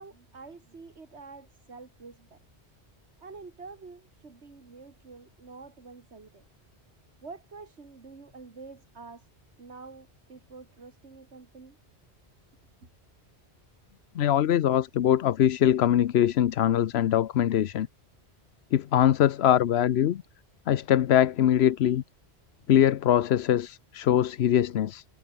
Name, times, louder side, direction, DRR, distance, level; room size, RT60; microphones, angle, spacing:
voice 1, 0.0-2.4 3.2-6.5 7.2-9.3 9.6-11.8 12.8-12.9, right 4 dB, 90° right, 2.5 m, -47 dB
voice 2, 14.2-17.9 18.7-20.2 20.7-22.0 22.7-25.0, left 11 dB, 75° left, 0.9 m, -22 dB
omnidirectional pair, 1.1 m